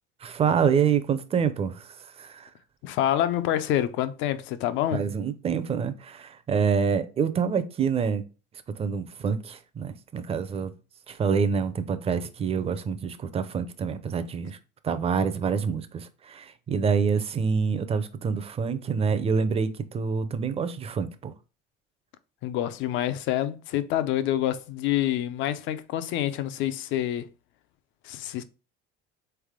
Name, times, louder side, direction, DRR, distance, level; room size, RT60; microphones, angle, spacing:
voice 1, 0.2-2.5 4.9-8.2 8.8-10.7 11.1-14.6 14.8-21.3, right 6 dB, 30° right, 0.5 m, -27 dB
voice 2, 2.8-5.0 22.4-27.3 28.0-28.4, left 12 dB, 65° left, 0.6 m, -27 dB
3.9 x 3.4 x 3.6 m
cardioid pair, 120°, 21 cm